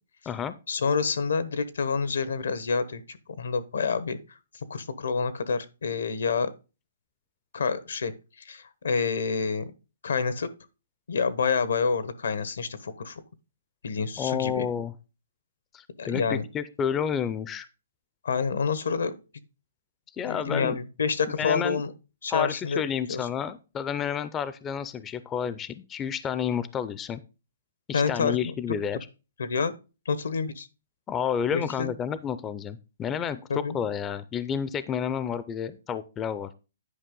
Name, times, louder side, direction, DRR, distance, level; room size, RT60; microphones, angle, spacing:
voice 1, 0.7-4.2 4.7-6.5 7.5-8.1 8.4-9.7 10.0-10.5 11.1-13.2 13.8-14.6 16.0-16.5 18.2-19.1 20.2-21.9 22.2-22.8 23.1-23.3 27.9-28.5 28.9-29.0 29.4-29.7 30.0-30.7 31.5-31.9 33.5-33.8, left 5 dB, 85° left, 1.1 m, -28 dB
voice 2, 14.2-14.9 15.7-17.7 20.1-20.8 21.4-21.8 22.3-27.2 27.9-29.0 31.1-36.5, left 8 dB, 15° left, 0.4 m, -30 dB
10.0 x 5.1 x 3.8 m
hypercardioid pair, 160°, 0 cm